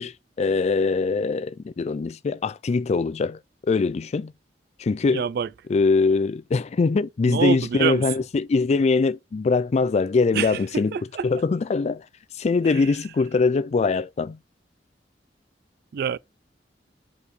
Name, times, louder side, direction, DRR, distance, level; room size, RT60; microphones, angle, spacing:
voice 1, 0.0-3.4 3.7-4.3 4.8-5.3 5.7-10.9 11.2-12.0 12.4-14.4, left 4 dB, 40° left, 0.3 m, -22 dB
voice 2, 5.1-5.5 7.3-8.1 10.3-11.3 12.6-12.9 15.9-16.2, right 7 dB, 60° right, 0.3 m, -26 dB
5.0 x 4.8 x 3.9 m
head